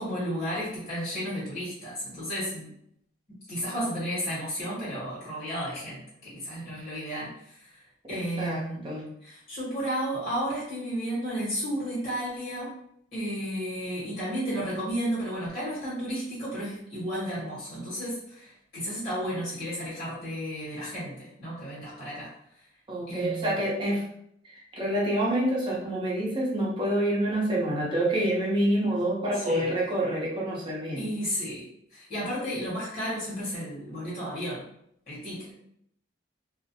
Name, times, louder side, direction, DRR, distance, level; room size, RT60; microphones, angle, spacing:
voice 1, 0.0-2.7 3.3-7.8 8.1-8.9 9.2-12.8 13.1-22.3 23.1-23.7 29.3-29.7 30.9-34.7 35.1-35.5, equal, 50° left, -9 dB, 1.3 m, -33 dB
voice 2, 8.1-9.1 22.9-24.0 24.5-31.1, right 1 dB, 25° right, -5 dB, 0.8 m, -27 dB
2.4 x 2.1 x 2.7 m, 0.72 s
head